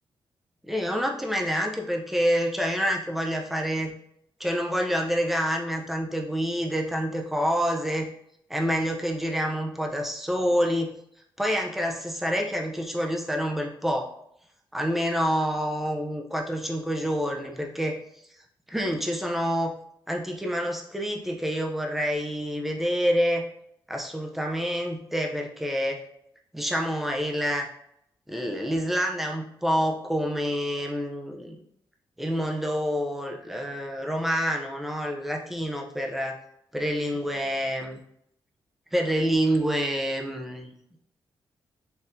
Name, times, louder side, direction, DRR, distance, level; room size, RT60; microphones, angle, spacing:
voice 1, 0.7-3.9 4.4-8.1 8.5-11.0 11.4-14.2 14.7-18.0 18.7-19.7 20.1-23.5 23.9-26.0 26.5-27.7 28.3-31.6 32.2-36.4 36.7-38.0 38.9-40.8, equal, ahead, 2 dB, 0.5 m, -27 dB
4.3 x 3.5 x 2.6 m, 0.72 s
wide cardioid pair, 165°, 9 cm